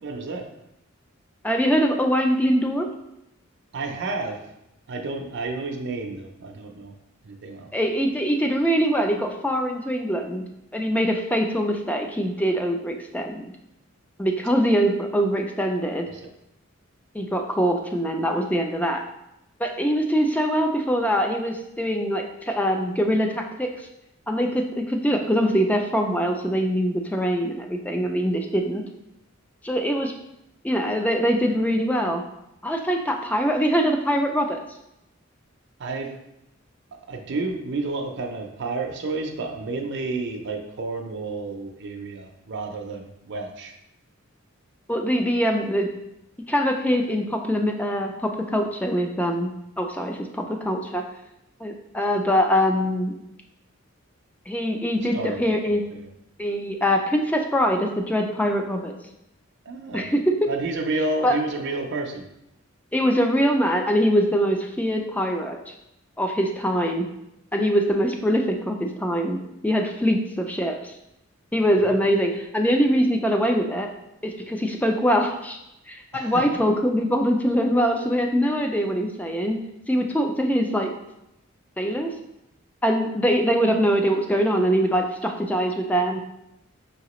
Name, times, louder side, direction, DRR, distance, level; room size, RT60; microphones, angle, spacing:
voice 1, 0.0-0.5 3.7-4.4 4.9-6.9 7.2-7.7 35.8-36.1 37.1-43.7 55.0-55.5 55.9-56.1 59.6-60.1 60.5-62.2 71.9-72.0 76.1-76.5, right 3 dB, 60° right, 2 dB, 0.5 m, -30 dB
voice 2, 1.4-2.9 7.7-10.4 10.7-13.5 14.2-16.1 17.1-19.0 19.6-23.7 24.3-28.8 29.6-30.1 30.6-32.2 32.6-34.6 44.9-45.9 46.5-51.0 51.6-53.1 54.5-56.0 56.4-58.9 59.9-60.5 61.2-61.4 62.9-65.7 66.2-67.1 67.5-69.4 69.6-70.9 71.5-73.9 74.2-75.6 75.9-79.6 79.9-80.9 81.8-82.1 82.8-86.2, equal, 5° left, 3 dB, 0.4 m, -23 dB
5.5 x 2.9 x 3.0 m, 0.83 s
head